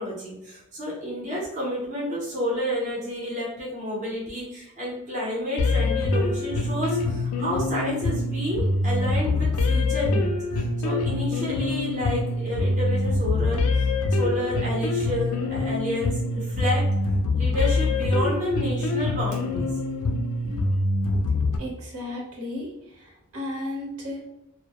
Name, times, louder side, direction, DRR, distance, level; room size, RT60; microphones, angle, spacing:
voice 1, 0.0-16.9 17.3-19.7 20.4-20.6, left 1 dB, 35° right, -5 dB, 0.6 m, -30 dB
sound 1, 5.6-21.6, left 2 dB, 90° left, 0.4 m, -25 dB
voice 2, 21.6-22.7 23.0-24.3, left 1 dB, 75° right, -3 dB, 0.9 m, -34 dB
2.1 x 2.0 x 2.8 m, 0.90 s
head